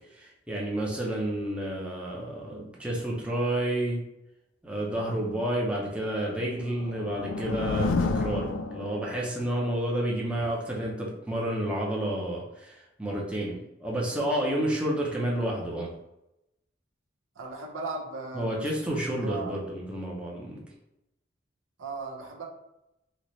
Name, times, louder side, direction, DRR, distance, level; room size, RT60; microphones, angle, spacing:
voice 1, 0.1-4.0 4.6-15.9 18.3-20.6, right 1 dB, 5° right, -3 dB, 0.5 m, -30 dB
sound 1, 6.5-9.4, left 3 dB, 75° left, 0.3 m, -30 dB
voice 2, 17.3-18.9 19.2-19.6 21.8-22.5, right 3 dB, 90° right, -1 dB, 0.7 m, -37 dB
4.0 x 2.1 x 3.0 m, 0.88 s
head